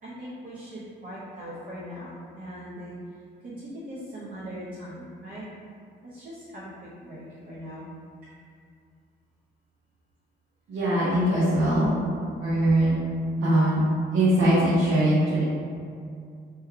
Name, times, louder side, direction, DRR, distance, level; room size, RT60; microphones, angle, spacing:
voice 1, 0.0-2.9 3.4-5.5 6.1-6.7 7.0-7.9 11.0-11.6, equal, 45° right, -10 dB, 0.9 m, -40 dB
voice 2, 10.7-11.9 12.4-12.9 13.4-13.8 14.1-15.4, right 1 dB, 75° right, -9 dB, 0.8 m, -21 dB
3.0 x 2.3 x 3.6 m, 2.4 s
cardioid pair, 90°, 20 cm